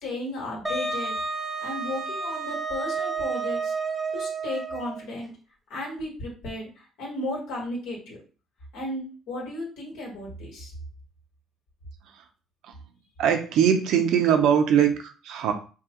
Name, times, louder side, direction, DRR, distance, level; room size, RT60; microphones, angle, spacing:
voice 1, 0.0-1.1 1.6-3.7 4.1-5.3 5.7-8.2 8.7-10.7, left 1 dB, 80° left, -2 dB, 1.7 m, -34 dB
Wind instrument woodwind instrument, 0.6-5.0, right 4 dB, 10° right, 0.7 m, -30 dB
voice 2, 13.2-15.5, right 8 dB, 80° right, 6 dB, 0.7 m, -21 dB
4.8 x 2.3 x 2.9 m, 0.36 s
cardioid pair, 95°, 0 cm